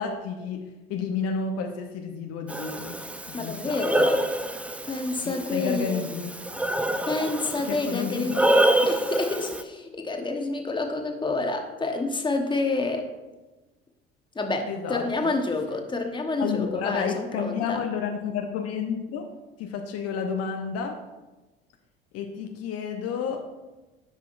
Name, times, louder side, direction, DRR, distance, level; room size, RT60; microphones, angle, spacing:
voice 1, 0.0-4.1 5.2-6.3 7.6-8.9 14.7-15.3 16.4-19.3 19.6-21.0 22.1-23.5, left 6 dB, 55° left, 4 dB, 0.8 m, -31 dB
Breathing, 2.5-9.6, right 1 dB, 5° right, 0.4 m, -26 dB
voice 2, 3.3-4.2 4.8-6.0 7.0-13.1 14.3-17.8, left 3 dB, 15° left, 4 dB, 1.1 m, -29 dB
10.0 x 5.5 x 2.5 m, 1.1 s
hypercardioid pair, 65°, 30 cm